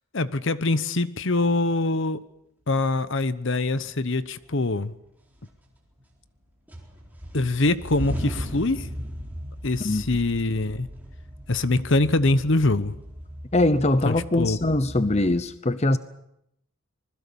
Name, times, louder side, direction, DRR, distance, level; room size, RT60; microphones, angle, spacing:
voice 1, 0.1-2.2 2.7-4.9 7.3-8.9 9.6-10.9 11.5-13.0 14.0-14.6, left 2 dB, 55° left, 1.0 m, -24 dB
sound 1, 4.1-4.8 5.2-6.4 6.7-15.4, equal, 5° right, 4.1 m, -37 dB
voice 2, 13.5-16.0, left 2 dB, 30° left, 0.8 m, -22 dB
26.0 x 20.5 x 7.1 m
head